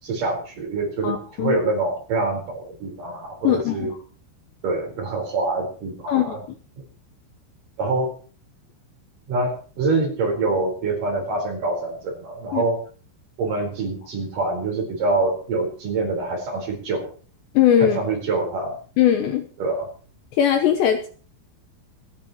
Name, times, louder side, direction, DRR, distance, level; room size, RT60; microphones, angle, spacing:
voice 1, 0.0-3.9 4.6-6.4 7.8-8.2 9.3-12.8 13.4-17.1 17.8-18.7 19.6-19.9, right 3 dB, 40° right, 1 dB, 5.5 m, -25 dB
voice 2, 1.0-1.5 3.4-3.9 6.1-6.4 12.5-12.6 17.5-18.0 19.0-19.4 20.4-21.1, left 10 dB, 75° left, 5 dB, 2.8 m, -19 dB
28.5 x 10.5 x 3.0 m, 0.41 s
omnidirectional pair, 6.0 m